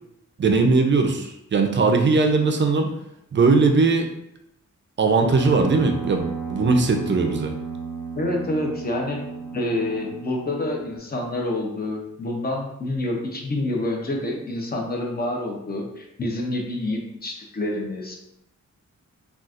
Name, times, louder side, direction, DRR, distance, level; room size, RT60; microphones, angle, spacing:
voice 1, 0.4-2.9 3.3-4.1 5.0-7.5, right 3 dB, 40° right, 4 dB, 0.4 m, -19 dB
sound 1, 5.2-11.0, right 4 dB, 70° left, 1.4 m, -33 dB
voice 2, 8.1-9.2 9.5-18.1, left 1 dB, 30° left, 0 dB, 0.6 m, -27 dB
3.9 x 2.3 x 2.4 m, 0.79 s
wide cardioid pair, 140°, 30 cm